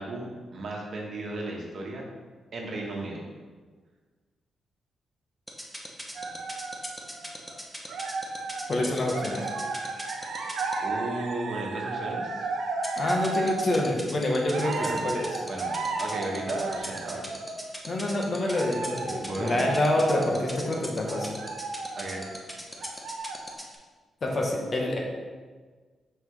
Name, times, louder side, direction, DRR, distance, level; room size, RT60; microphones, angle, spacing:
voice 1, 0.0-2.0 2.5-3.2 10.8-12.5 14.8-15.0 15.5-17.4 19.1-19.8 22.0-22.2, right 2 dB, 55° right, -1 dB, 1.2 m, -35 dB
sound 1, 5.5-10.7 12.8-23.7, equal, 5° left, 0.8 m, -38 dB
sound 2, 6.1-7.5 7.9-8.9 9.1-13.9 14.5-17.8 18.4-22.5 22.8-23.6, right 3 dB, 90° right, 0.7 m, -34 dB
voice 2, 8.7-9.5 13.0-15.3 17.9-21.3 24.2-25.0, left 1 dB, 40° left, 0 dB, 1.0 m, -27 dB
5.6 x 5.6 x 3.2 m, 1.4 s
cardioid pair, 120°, 0 cm